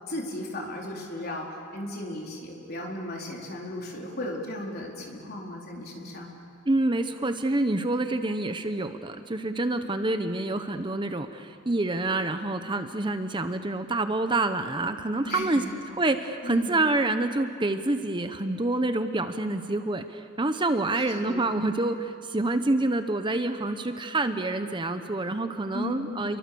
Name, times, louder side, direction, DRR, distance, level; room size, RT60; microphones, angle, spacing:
voice 1, 0.1-6.3 15.2-15.7 16.4-16.8 21.2-21.5 25.7-26.3, left 1 dB, 50° left, -1 dB, 4.4 m, -36 dB
voice 2, 6.7-15.6 16.0-26.4, right 2 dB, 25° right, 8 dB, 0.9 m, -27 dB
30.0 x 23.5 x 7.0 m, 2.5 s
head